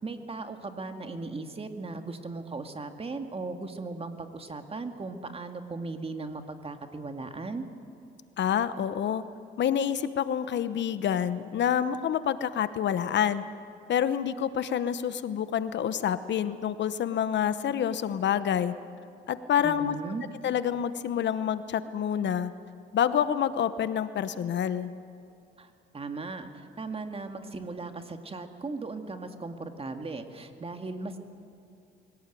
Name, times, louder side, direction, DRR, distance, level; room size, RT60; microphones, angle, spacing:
voice 1, 0.0-7.7 19.6-20.2 25.6-31.2, right 3 dB, 30° right, 6 dB, 2.0 m, -37 dB
voice 2, 8.4-9.2 9.6-13.4 13.9-18.7 19.3-19.9 20.4-22.5 22.9-24.9, left 9 dB, 65° left, 13 dB, 1.0 m, -27 dB
22.5 x 17.5 x 9.2 m, 2.6 s
cardioid pair, 90°, 20 cm